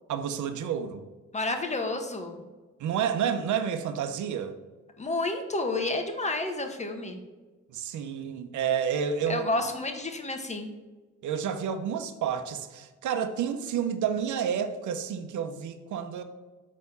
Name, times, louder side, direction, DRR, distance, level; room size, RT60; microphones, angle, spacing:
voice 1, 0.1-1.0 2.8-4.6 7.7-9.4 11.2-16.2, right 8 dB, 75° right, 1.0 m, -30 dB
voice 2, 1.3-2.4 5.0-7.2 9.3-10.7, left 2 dB, 25° left, 1.4 m, -30 dB
7.4 x 4.4 x 6.9 m
cardioid pair, 90°, 30 cm